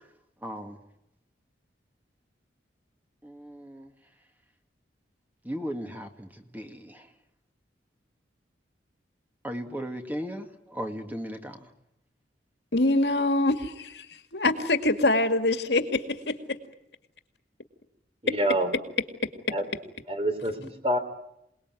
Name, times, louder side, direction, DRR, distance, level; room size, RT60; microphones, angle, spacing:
voice 1, 0.4-0.8 3.2-3.9 5.5-6.3 6.5-7.0 9.4-11.6, equal, 10° right, 5 dB, 2.0 m, -36 dB
voice 2, 12.7-14.1 14.3-16.6, left 2 dB, 65° left, 8 dB, 2.2 m, -24 dB
voice 3, 18.2-18.7 19.5-19.6 20.1-21.0, right 1 dB, 30° right, 8 dB, 3.2 m, -27 dB
27.5 x 20.0 x 9.2 m, 0.84 s
head